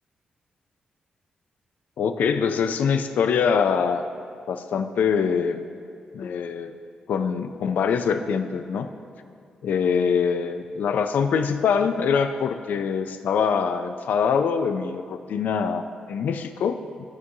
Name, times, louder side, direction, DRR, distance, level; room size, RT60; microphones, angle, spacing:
voice 1, 2.0-4.0 4.5-5.6 6.1-6.7 7.1-8.9 9.6-17.0, left 6 dB, 75° left, 8 dB, 0.4 m, -24 dB
13.5 x 4.7 x 2.7 m, 2.4 s
cardioid pair, 60°, 3 cm